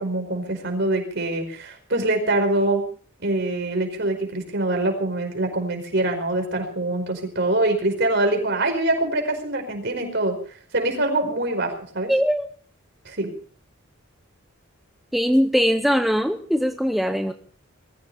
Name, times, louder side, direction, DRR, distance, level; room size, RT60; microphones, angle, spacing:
voice 1, 0.0-2.8 3.2-10.3 10.7-12.1 13.0-13.3, right 2 dB, 55° right, 4 dB, 5.0 m, -24 dB
voice 2, 12.1-12.5 15.1-17.3, equal, ahead, 6 dB, 0.8 m, -21 dB
21.5 x 15.0 x 4.2 m, 0.43 s
head